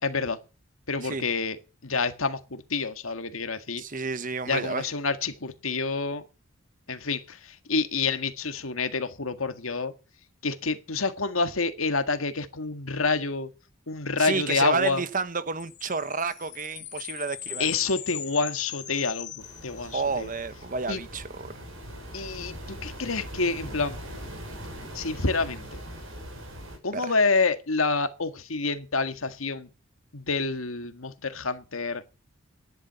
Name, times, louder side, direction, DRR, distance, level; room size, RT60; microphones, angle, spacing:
voice 1, 0.0-0.4 0.9-1.6 1.8-3.8 4.5-6.2 6.9-7.4 7.7-9.9 10.4-13.5 13.9-15.0 17.6-20.3 20.9-21.0 22.1-24.0 24.9-25.8 26.8-29.7 30.1-32.0, left 4 dB, 85° left, 1.8 m, -28 dB
voice 2, 3.8-4.9 14.2-17.7 19.8-21.6 26.9-27.1, right 4 dB, 40° right, 1.1 m, -30 dB
sound 1, 15.6-20.2, left 12 dB, 55° left, 2.8 m, -39 dB
sound 2, 19.4-26.8, equal, 80° right, 6.5 m, -41 dB
13.5 x 11.0 x 6.9 m
head